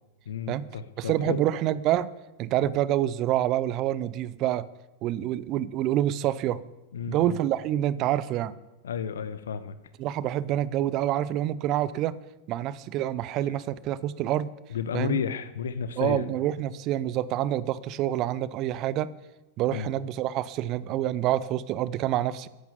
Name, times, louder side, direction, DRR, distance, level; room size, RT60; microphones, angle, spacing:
voice 1, 0.3-1.4 6.9-7.4 8.8-9.7 14.7-16.3 19.7-19.9, left 7 dB, 65° left, 13 dB, 1.0 m, -32 dB
voice 2, 1.0-2.1 2.4-4.7 5.0-6.6 7.1-8.5 10.0-12.2 12.5-14.5 14.9-15.2 16.0-19.1 19.6-22.5, right 13 dB, 40° right, 19 dB, 0.6 m, -27 dB
14.5 x 10.5 x 7.0 m, 1.0 s
figure-of-eight pair, 90°, 0 cm